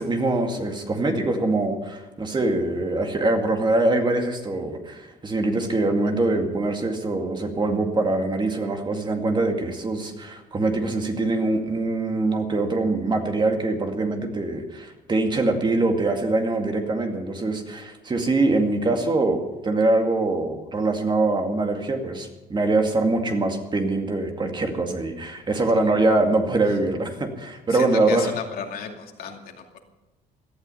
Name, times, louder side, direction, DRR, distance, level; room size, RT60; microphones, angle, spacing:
voice 1, 0.0-28.3, right 2 dB, 25° right, 4 dB, 2.3 m, -23 dB
voice 2, 27.7-29.8, left 6 dB, 60° left, 3 dB, 2.5 m, -34 dB
17.5 x 12.0 x 5.7 m, 1.0 s
cardioid pair, 110°, 17 cm